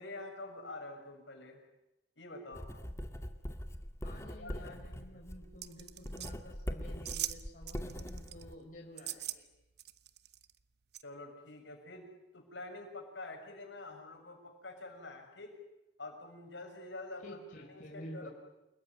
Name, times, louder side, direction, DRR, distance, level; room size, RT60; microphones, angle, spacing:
voice 1, 0.0-1.6 2.2-2.7 4.1-4.8 5.1-5.2 11.0-12.1 12.3-15.5 16.0-18.3, left 2 dB, 75° left, 3 dB, 7.0 m, -47 dB
Writing, 2.5-8.5, equal, 15° left, 2.1 m, -42 dB
voice 2, 4.0-9.4 17.2-18.3, equal, 45° left, 0 dB, 4.6 m, -50 dB
sound 1, 5.6-6.3 7.1-7.4 7.7-8.4 9.0-9.4 9.8-10.5 10.9-11.0, right 13 dB, 60° right, 1.0 m, -40 dB
29.0 x 20.5 x 9.7 m, 0.92 s
head